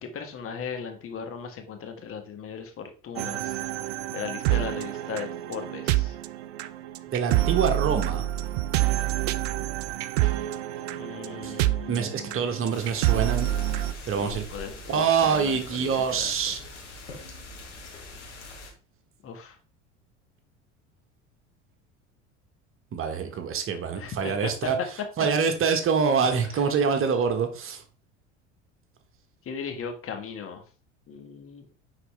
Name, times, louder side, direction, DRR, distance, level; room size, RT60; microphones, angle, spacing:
voice 1, 0.0-3.6 3.8-6.1 10.9-12.4 14.0-16.5 19.2-19.6 23.9-24.7 26.5-26.6 29.4-30.6 31.1-31.8, left 6 dB, 40° left, 5 dB, 1.6 m, -38 dB
sound 1, 3.2-13.9, right 14 dB, 60° right, 0.6 m, -27 dB
voice 2, 7.1-8.2 11.4-11.5 11.9-13.5 14.0-14.4 14.9-16.6 22.9-24.8 25.2-27.8, right 6 dB, 35° right, 7 dB, 1.3 m, -25 dB
sound 2, 12.7-18.7, left 2 dB, 80° left, 1.8 m, -43 dB
9.7 x 4.2 x 3.4 m, 0.37 s
figure-of-eight pair, 70°, 35 cm